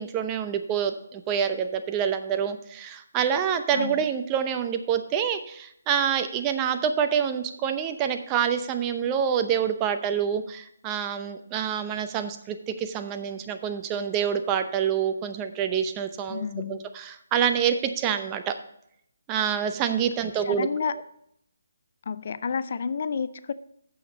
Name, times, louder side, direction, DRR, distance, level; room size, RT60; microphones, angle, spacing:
voice 1, 0.0-18.5 19.3-20.7, right 8 dB, 20° right, 8 dB, 0.7 m, -27 dB
voice 2, 3.7-4.1 16.3-16.8 20.4-20.9 22.1-23.5, left 6 dB, 55° left, 15 dB, 0.5 m, -30 dB
9.2 x 7.1 x 4.0 m, 0.74 s
figure-of-eight pair, 155°, 0 cm